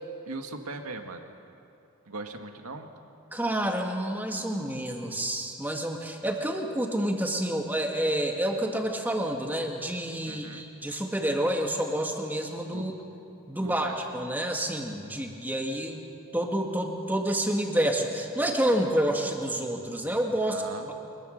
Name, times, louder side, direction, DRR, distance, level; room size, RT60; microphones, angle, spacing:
voice 1, 0.3-1.2 2.1-2.9 10.2-10.7 12.7-12.9 13.6-14.1 20.5-20.9, right 3 dB, 90° right, 5 dB, 1.9 m, -39 dB
voice 2, 3.3-12.9 13.5-16.0 16.3-20.6, right 1 dB, 10° right, 2 dB, 1.9 m, -28 dB
24.5 x 21.5 x 6.6 m, 2.7 s
head